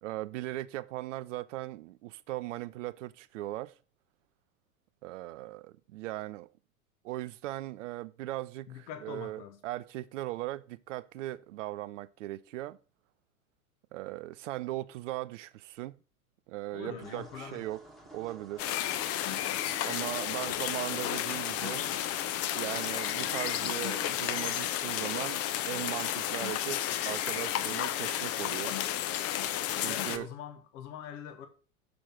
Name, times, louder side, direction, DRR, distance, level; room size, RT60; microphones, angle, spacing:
voice 1, 0.0-3.7 5.0-6.5 7.0-12.8 13.9-16.0 16.5-17.8 18.1-18.7 19.8-22.0 22.5-28.8 29.8-30.3, right 17 dB, 60° right, 0.6 m, -38 dB
voice 2, 8.7-9.6 16.7-17.6 29.8-31.5, left 8 dB, 55° left, 1.5 m, -43 dB
sound 1, 17.0-24.5, right 2 dB, ahead, 1.8 m, -52 dB
sound 2, 18.6-30.2, left 12 dB, 35° left, 0.7 m, -32 dB
6.4 x 6.1 x 6.0 m
hypercardioid pair, 95°, 42 cm